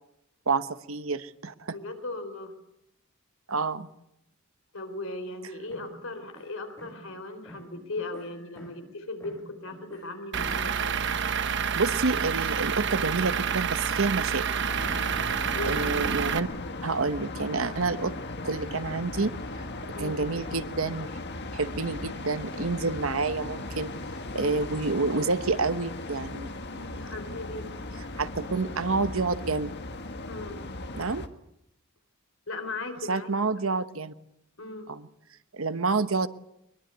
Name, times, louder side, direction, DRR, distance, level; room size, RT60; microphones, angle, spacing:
voice 1, 0.5-1.8 3.5-3.9 11.8-15.1 15.6-16.5 16.8-18.1 18.4-19.4 20.0-21.1 21.5-23.9 24.3-27.1 28.1-29.7 30.9-31.2 33.1-34.1 34.9-35.1 35.5-36.3, right 3 dB, 85° right, 12 dB, 1.1 m, -29 dB
voice 2, 1.7-2.5 4.7-11.0 15.5-15.9 19.9-20.2 24.3-24.7 27.0-28.1 30.3-30.6 32.5-33.3 34.6-34.9, left 2 dB, 80° left, 7 dB, 4.0 m, -38 dB
sound 1, 5.7-7.2 7.5-9.0 9.2-12.5 12.8-14.3 14.6-16.0, right 1 dB, 15° left, 8.0 m, -49 dB
Truck / Idling, 10.3-16.4, right 7 dB, 60° right, 1.0 m, -28 dB
sound 2, 14.7-31.3, left 2 dB, 55° left, 1.7 m, -37 dB
22.0 x 21.5 x 8.1 m, 0.83 s
head